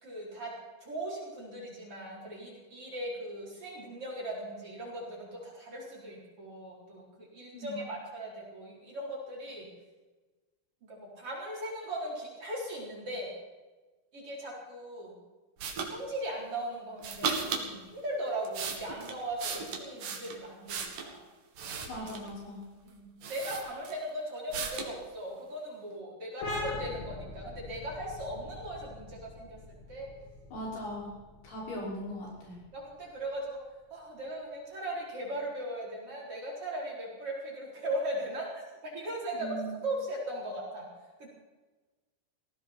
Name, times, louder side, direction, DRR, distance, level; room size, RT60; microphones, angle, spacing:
voice 1, 0.0-0.5 0.8-9.7 10.8-13.3 14.1-15.1 15.8-21.3 22.8-30.1 32.7-33.6 33.9-39.6 39.8-40.8 41.2-41.3, right 1 dB, 35° right, -4 dB, 4.9 m, -38 dB
voice 2, 7.5-7.9 21.9-22.6 30.5-31.1 31.4-32.6 39.3-39.8, equal, 80° left, -4 dB, 7.9 m, -39 dB
sound 1, 15.6-15.9 17.0-17.7 18.3-21.1 21.6-22.4 22.9-23.0 23.2-24.1 24.5-24.9, right 5 dB, 55° right, 3.2 m, -36 dB
sound 2, 26.4-33.7, left 2 dB, 45° left, 3.9 m, -42 dB
19.5 x 16.5 x 4.5 m, 1.2 s
omnidirectional pair, 4.6 m